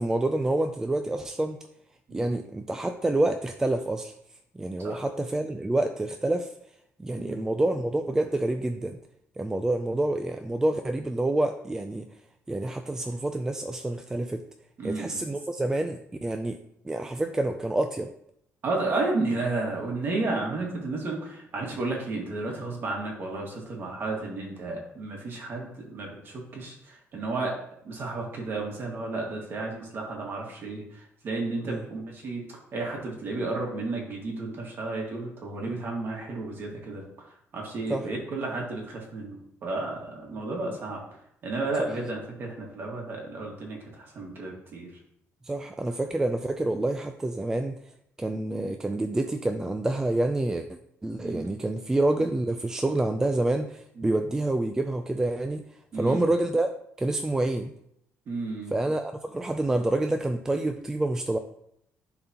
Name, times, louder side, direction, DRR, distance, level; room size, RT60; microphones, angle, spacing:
voice 1, 0.0-1.6 2.1-4.1 4.5-6.5 7.0-9.0 9.4-12.1 12.5-14.4 14.8-16.6 16.8-18.1 31.6-31.9 37.9-38.1 41.8-41.9 45.4-47.8 48.2-55.7 55.9-56.7 57.0-57.7 58.7-61.4, right 2 dB, 10° right, 6 dB, 0.3 m, -27 dB
voice 2, 14.8-15.3 18.6-27.5 27.8-41.0 41.4-44.9 51.2-51.5 54.0-54.2 55.9-56.3 58.3-58.7, right 3 dB, 45° right, 0 dB, 1.8 m, -32 dB
11.0 x 3.9 x 2.9 m, 0.73 s
cardioid pair, 145°, 5 cm